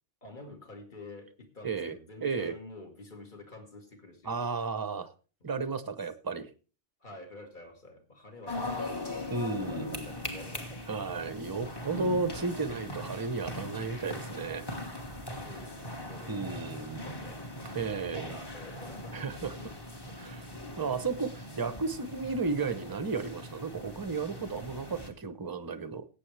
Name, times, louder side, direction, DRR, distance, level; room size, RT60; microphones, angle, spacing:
voice 1, 0.2-4.5 5.6-5.7 7.0-9.1 9.4-10.9 15.3-19.2, left 2 dB, 40° left, 3 dB, 2.3 m, -49 dB
voice 2, 1.6-2.5 4.3-5.1 5.4-6.5 9.3-10.1 10.9-14.7 16.3-17.0 17.7-18.4 19.1-19.5 20.2-20.5 20.8-26.1, right 4 dB, 20° right, 12 dB, 0.7 m, -33 dB
sound 1, 8.5-25.1, left 1 dB, 20° left, 1.5 m, -40 dB
18.5 x 8.5 x 3.3 m, 0.36 s
omnidirectional pair, 1.2 m